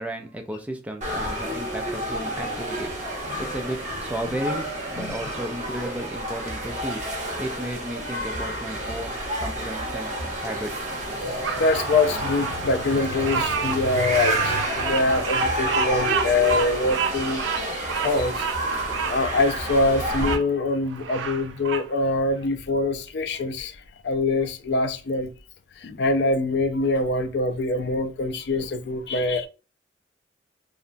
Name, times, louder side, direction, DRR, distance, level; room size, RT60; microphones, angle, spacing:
voice 1, 0.0-2.9 3.4-7.0 7.4-10.2 10.4-10.9, right 1 dB, 10° right, 0.3 m, -33 dB
sound 1, 1.0-20.4, right 1 dB, 45° right, 0.9 m, -30 dB
voice 2, 11.3-18.5 19.1-23.8 24.0-25.3 25.8-29.5, left 2 dB, 65° left, 0.4 m, -24 dB
Bird vocalization bird call bird song, 11.4-20.4 20.9-21.9, right 6 dB, 85° right, 0.3 m, -30 dB
2.8 x 2.2 x 2.5 m
head